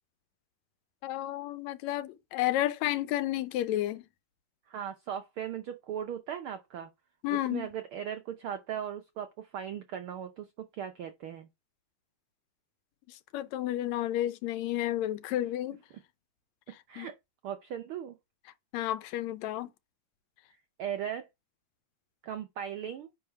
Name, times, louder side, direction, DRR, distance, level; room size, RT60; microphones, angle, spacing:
voice 1, 1.0-4.0 7.2-7.7 13.1-15.8 17.0-17.1 18.7-19.7, left 13 dB, 75° left, 1.9 m, -31 dB
voice 2, 4.7-6.9 7.3-11.5 16.9-17.1 17.4-18.2 20.8-21.3 22.2-23.1, right 9 dB, 80° right, 1.2 m, -38 dB
9.6 x 3.7 x 5.6 m
omnidirectional pair, 3.4 m